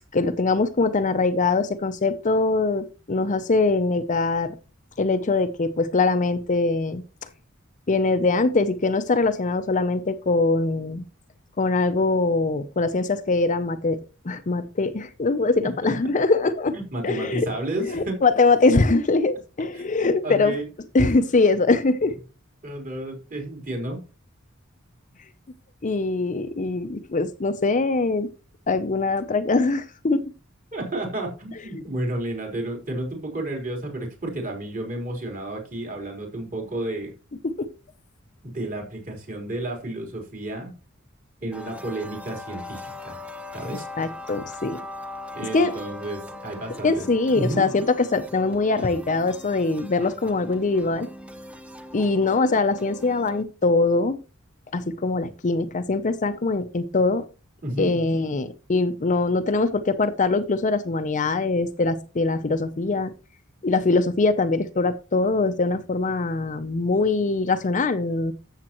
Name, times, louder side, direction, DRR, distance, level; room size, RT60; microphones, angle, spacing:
voice 1, 0.0-4.5 5.0-7.0 7.9-11.0 11.6-14.0 14.2-16.7 17.0-17.5 17.8-20.5 20.9-22.1 25.8-28.3 28.7-30.2 31.7-31.8 37.6-37.7 44.0-44.8 45.5-45.7 46.8-51.1 51.9-54.2 54.7-57.2 57.8-63.1 63.6-68.3, left 3 dB, 35° left, 10 dB, 0.6 m, -22 dB
voice 2, 15.6-15.9 16.7-18.2 19.7-19.8 20.2-20.6 22.6-24.0 30.7-37.1 38.4-40.7 41.4-43.2 43.5-43.8 45.3-47.1 47.3-47.6 57.6-57.9, right 1 dB, 40° right, 1 dB, 4.1 m, -31 dB
sound 1, 41.5-53.4, left 1 dB, 5° right, 0.9 m, -40 dB
13.5 x 7.4 x 3.0 m, 0.33 s
head